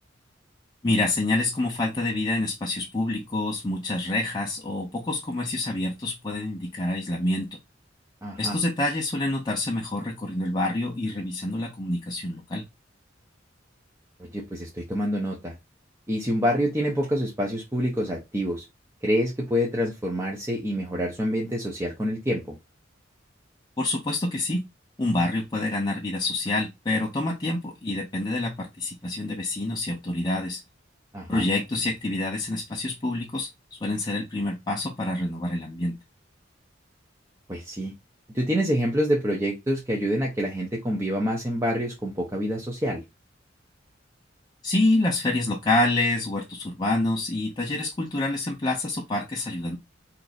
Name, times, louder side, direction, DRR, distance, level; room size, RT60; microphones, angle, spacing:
voice 1, 0.8-7.6 8.4-12.7 23.8-24.7 25.0-30.6 31.3-35.9 44.6-49.8, left 2 dB, 20° left, 0.5 m, -27 dB
voice 2, 8.2-8.5 14.2-15.5 16.1-18.6 19.0-22.6 31.1-31.4 37.5-37.9 38.3-43.0, equal, 15° right, 0.7 m, -27 dB
2.9 x 2.5 x 4.0 m
head